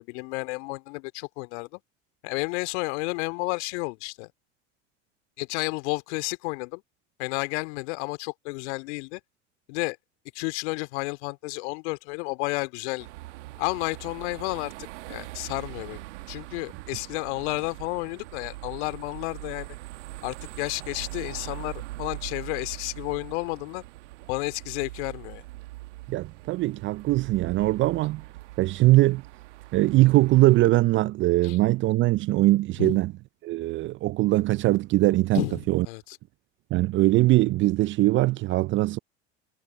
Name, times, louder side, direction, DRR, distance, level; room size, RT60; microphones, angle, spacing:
voice 1, 0.0-1.8 2.2-4.3 5.4-6.8 7.2-9.2 9.7-10.0 10.3-13.1 13.6-19.7 20.2-23.8 24.3-25.4 31.4-31.6 32.8-33.0 35.3-35.6 35.8-36.2, left 27 dB, 65° left, 2.5 m, -31 dB
sound 1, 13.0-30.7, right 19 dB, 70° right, 1.3 m, -42 dB
voice 2, 26.1-28.2 28.6-29.2 29.7-33.1 33.4-35.4 35.7-35.9 36.7-39.0, right 18 dB, 35° right, 0.4 m, -21 dB
hypercardioid pair, 75°, 37 cm